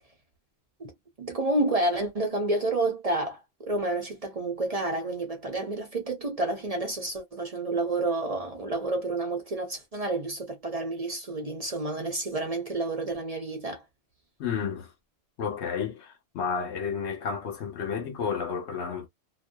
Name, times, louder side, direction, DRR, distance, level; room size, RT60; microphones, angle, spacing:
voice 1, 1.2-13.8, right 2 dB, 40° right, 0.7 m, -29 dB
voice 2, 14.4-14.9 15.4-19.1, left 6 dB, 75° left, 1.1 m, -31 dB
2.6 x 2.2 x 2.2 m
omnidirectional pair, 1.2 m